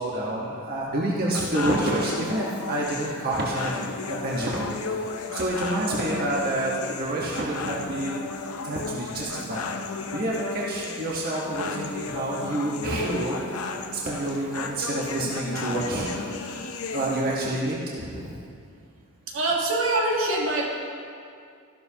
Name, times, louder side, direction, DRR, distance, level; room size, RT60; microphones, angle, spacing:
voice 1, 0.0-8.1 8.6-9.6 10.1-13.4 13.9-18.4, right 1 dB, 45° right, -5 dB, 1.4 m, -28 dB
sound 1, 1.3-17.4, left 4 dB, 85° left, 0.7 m, -34 dB
voice 2, 19.3-20.7, right 2 dB, 65° right, -2 dB, 1.7 m, -24 dB
14.5 x 12.0 x 2.9 m, 2.4 s
head